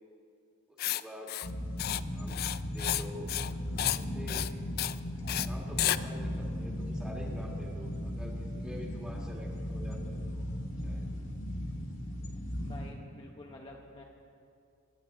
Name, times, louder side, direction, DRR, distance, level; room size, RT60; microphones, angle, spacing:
voice 1, 0.7-1.3 1.9-2.4 2.7-3.3 3.9-4.5 5.3-10.5 10.8-11.1, equal, 5° right, -2 dB, 1.9 m, -47 dB
Writing, 0.8-1.0 1.3-1.5 1.8-2.0 2.3-3.0 3.3-3.5 3.8-4.0 4.3-4.5 4.8-5.0 5.3-5.5 5.8-6.0, left 14 dB, 45° left, 0.3 m, -31 dB
sound 1, 1.4-12.9, equal, 65° left, 1.9 m, -37 dB
voice 2, 12.6-14.0, left 2 dB, 25° left, -1 dB, 0.8 m, -49 dB
22.5 x 10.5 x 3.8 m, 2.5 s
head